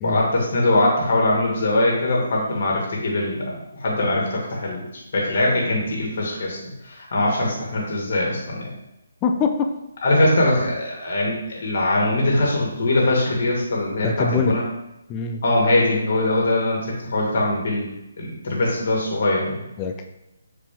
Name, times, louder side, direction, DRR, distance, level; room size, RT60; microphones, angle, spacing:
voice 1, 0.0-3.5 3.8-4.8 5.1-6.6 6.8-8.7 10.0-14.6 15.4-19.6, left 1 dB, 50° left, -2 dB, 2.1 m, -22 dB
voice 2, 9.2-9.7 14.0-14.5 15.1-15.4 19.8-20.1, left 5 dB, 20° left, 4 dB, 0.5 m, -23 dB
6.9 x 4.7 x 3.5 m, 0.90 s
figure-of-eight pair, 140°, 0 cm